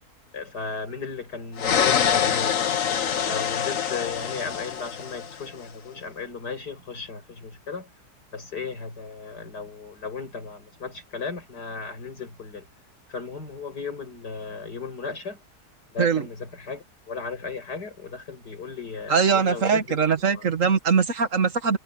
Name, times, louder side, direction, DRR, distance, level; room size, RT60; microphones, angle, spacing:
voice 1, 0.3-2.6 3.2-7.9 8.3-12.7 13.1-15.4 15.9-20.4, left 5 dB, 80° left, 6.6 m, -36 dB
sound 1, 1.6-5.5, left 8 dB, 55° left, 1.4 m, -25 dB
voice 2, 19.1-21.8, right 6 dB, 50° right, 1.9 m, -21 dB
omnidirectional pair, 1.7 m